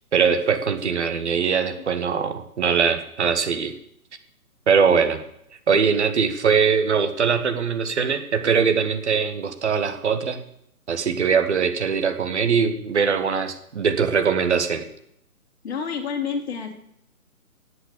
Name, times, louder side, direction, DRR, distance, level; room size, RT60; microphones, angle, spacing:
voice 1, 0.1-3.7 4.7-5.2 5.7-10.4 10.9-14.8, right 6 dB, 50° right, 7 dB, 1.5 m, -21 dB
voice 2, 15.6-16.7, left 6 dB, 45° left, 2 dB, 3.0 m, -28 dB
13.5 x 8.1 x 8.5 m, 0.74 s
figure-of-eight pair, 135°, 45 cm